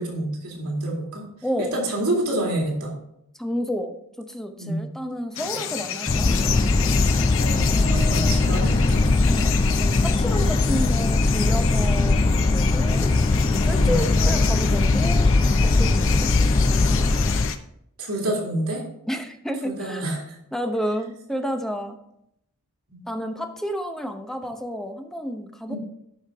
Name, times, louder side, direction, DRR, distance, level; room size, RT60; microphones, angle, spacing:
voice 1, 0.0-1.2 1.6-3.0 4.6-4.8 7.4-9.0 13.7-14.0 18.0-18.8 19.6-20.4 22.9-23.0 25.7-25.8, right 1 dB, 85° right, -1 dB, 2.3 m, -28 dB
voice 2, 1.4-1.8 3.4-4.0 4.3-6.3 7.6-8.5 9.3-13.1 13.4-15.3 15.7-16.3 19.1-20.1 20.5-22.0 23.1-25.8, equal, ahead, 5 dB, 0.7 m, -30 dB
sound 1, 5.4-17.6, left 8 dB, 60° left, 0.7 m, -31 dB
sound 2, 6.1-17.5, left 3 dB, 25° left, 0.3 m, -20 dB
12.5 x 5.1 x 3.5 m, 0.75 s
head